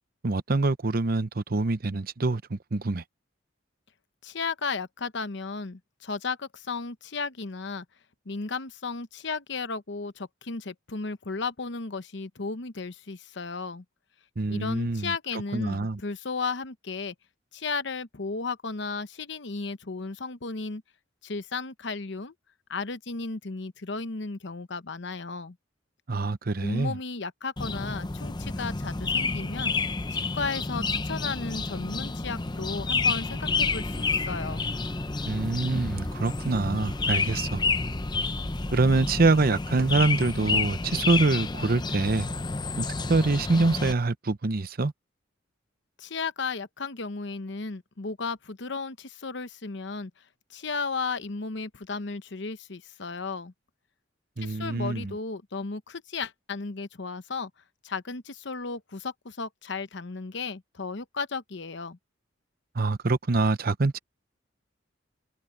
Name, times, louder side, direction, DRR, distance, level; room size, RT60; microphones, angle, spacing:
voice 1, 0.2-3.0 14.4-15.1 15.5-16.0 26.1-27.0 35.3-37.6 38.7-42.3 42.8-44.9 54.4-55.1 62.7-64.0, right 3 dB, 50° right, 0.8 m, -25 dB
voice 2, 4.2-7.8 8.3-13.8 14.5-17.1 17.5-20.8 21.2-22.3 22.7-25.6 26.6-29.8 30.1-34.7 46.0-50.1 50.5-53.5 54.4-57.5 57.8-62.0, left 4 dB, 65° left, 0.9 m, -34 dB
sound 1, 27.6-43.9, left 4 dB, 20° left, 0.6 m, -30 dB
sound 2, 33.5-41.2, equal, 5° left, 1.7 m, -40 dB
head